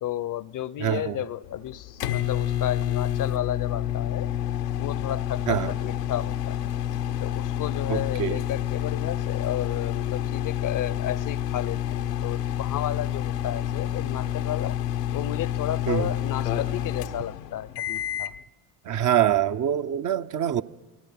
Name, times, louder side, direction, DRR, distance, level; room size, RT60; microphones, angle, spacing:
voice 1, 0.0-4.3 4.7-6.7 7.2-14.8 15.1-18.3, left 11 dB, 40° left, 0.8 m, -33 dB
voice 2, 0.8-1.2 5.5-5.7 7.9-8.4 15.9-16.1 18.8-20.6, right 10 dB, 40° right, 0.9 m, -25 dB
sound 1, 1.4-18.4, left 11 dB, 85° left, 1.2 m, -29 dB
29.0 x 19.0 x 5.9 m
hypercardioid pair, 65°, 46 cm